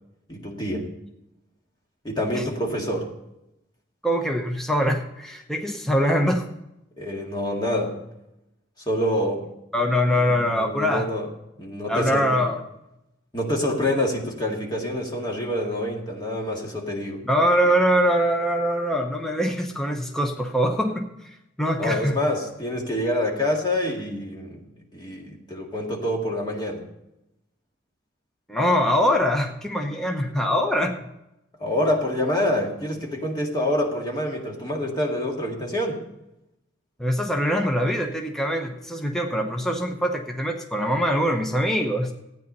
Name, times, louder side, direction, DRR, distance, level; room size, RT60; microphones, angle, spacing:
voice 1, 0.3-0.9 2.0-3.1 7.0-8.0 8.9-9.5 10.3-11.3 11.6-12.5 13.3-17.2 21.8-26.8 31.6-36.0, left 1 dB, 20° left, 0 dB, 1.9 m, -26 dB
voice 2, 4.0-6.5 9.7-11.1 11.9-12.6 17.2-22.2 28.5-31.0 37.0-42.1, equal, ahead, 2 dB, 0.9 m, -23 dB
13.5 x 9.3 x 5.4 m, 0.87 s
head